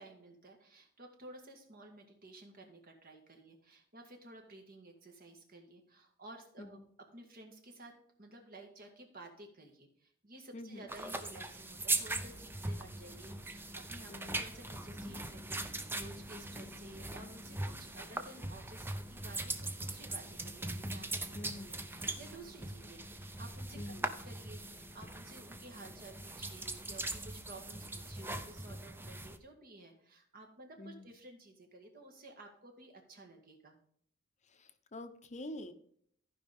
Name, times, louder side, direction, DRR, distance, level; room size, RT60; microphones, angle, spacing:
voice 1, 0.0-6.8 7.1-7.9 8.2-33.8, right 2 dB, 45° right, 3 dB, 1.8 m, -54 dB
voice 2, 10.5-10.9 14.1-14.4 21.3-21.8 23.8-24.1 30.8-31.1 34.5-35.7, left 1 dB, 35° left, 9 dB, 0.8 m, -46 dB
sound 1, 10.9-29.4, right 2 dB, 10° right, 0.6 m, -41 dB
14.5 x 5.3 x 3.6 m, 0.64 s
head